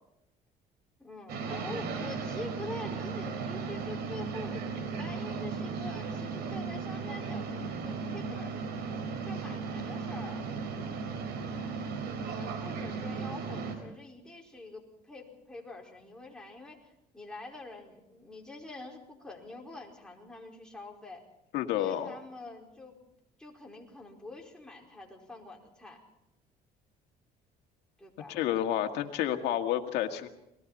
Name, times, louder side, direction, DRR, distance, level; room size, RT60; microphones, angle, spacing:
voice 1, 1.0-8.5 9.2-10.5 12.2-21.2 21.7-23.0 23.4-26.0 28.0-28.4, left 2 dB, 5° left, -1 dB, 4.9 m, -45 dB
sound 1, 1.3-13.8, right 5 dB, 75° right, 4.4 m, -36 dB
voice 2, 21.5-22.1 28.3-30.3, left 11 dB, 85° left, 5 dB, 2.0 m, -30 dB
30.0 x 20.5 x 4.2 m, 0.84 s
cardioid pair, 110°, 17 cm